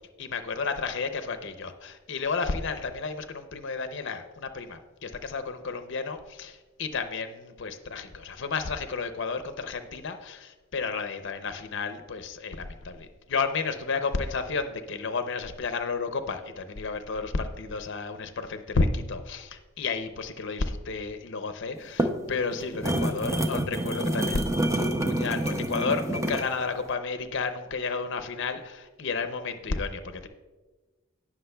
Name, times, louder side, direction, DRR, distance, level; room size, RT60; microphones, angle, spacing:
voice 1, 0.2-30.3, left 4 dB, 60° left, 8 dB, 0.6 m, -32 dB
sound 1, 21.8-26.5, right 1 dB, 15° right, 0.5 m, -27 dB
17.5 x 6.0 x 2.2 m, 1.2 s
head